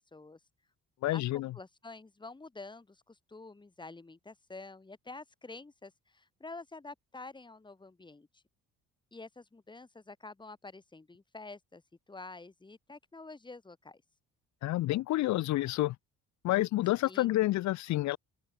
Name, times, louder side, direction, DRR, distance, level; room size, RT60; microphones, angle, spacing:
voice 1, 1.0-1.5 14.6-16.0 16.4-18.2, left 16 dB, 60° left, 0.5 m, -29 dB
voice 2, 1.5-8.4 9.1-11.8 12.1-14.0 17.0-17.3, left 3 dB, 15° left, 1.2 m, -48 dB
open air
cardioid pair, 80°, 32 cm